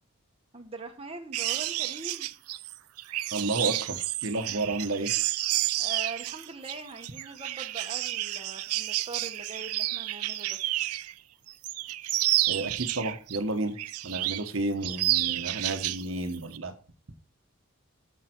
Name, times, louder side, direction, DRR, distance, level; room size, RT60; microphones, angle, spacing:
voice 1, 0.5-2.3 4.5-4.6 5.8-10.6, right 3 dB, 25° right, 3 dB, 1.1 m, -42 dB
sound 1, 1.3-11.1 11.5-13.4 13.8-14.5 14.8-16.0 16.3-16.6, right 16 dB, 90° right, 0.5 m, -30 dB
voice 2, 3.3-5.1 12.5-13.8 14.0-16.7, right 2 dB, 65° right, 7 dB, 1.1 m, -31 dB
7.9 x 7.4 x 4.5 m, 0.36 s
head